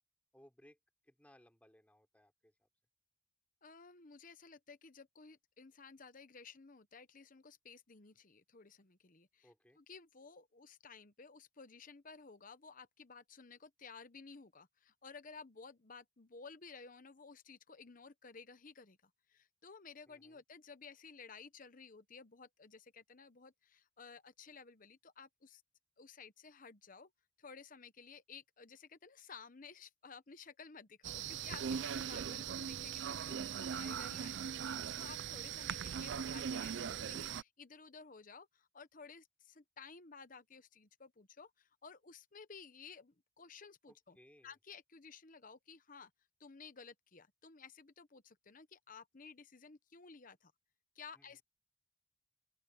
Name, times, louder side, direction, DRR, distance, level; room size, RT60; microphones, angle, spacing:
voice 1, 0.3-0.8 1.0-2.7 9.4-9.8 20.1-20.4 43.9-44.5 51.2-51.4, equal, 5° left, 5.5 m, -65 dB
voice 2, 3.6-9.5 9.8-25.6 26.0-27.1 27.4-44.2 44.4-46.1 46.4-50.5 50.9-51.4, left 5 dB, 45° left, 1.0 m, -55 dB
sound 1, 31.0-37.4, right 8 dB, 65° right, 0.4 m, -40 dB
open air
head